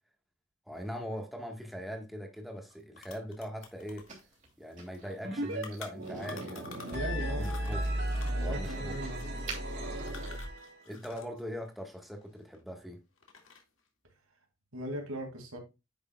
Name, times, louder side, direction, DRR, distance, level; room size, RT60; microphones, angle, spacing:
voice 1, 0.7-4.1 4.6-7.8 8.4-9.0 10.8-13.0, equal, ahead, 1.6 m, -41 dB
sound 1, 2.4-2.5 2.7-7.1 7.4-11.4 11.7-12.8 13.2-13.8, left 5 dB, 70° left, 2.2 m, -50 dB
sound 2, 3.6-10.3, right 4 dB, 35° right, 3.1 m, -51 dB
sound 3, 5.2-5.6 5.9-10.9, right 1 dB, 55° right, 3.3 m, -35 dB
voice 2, 6.6-7.5 8.2-9.3 14.7-15.6, right 1 dB, 85° right, 2.5 m, -39 dB
10.0 x 6.5 x 2.4 m
head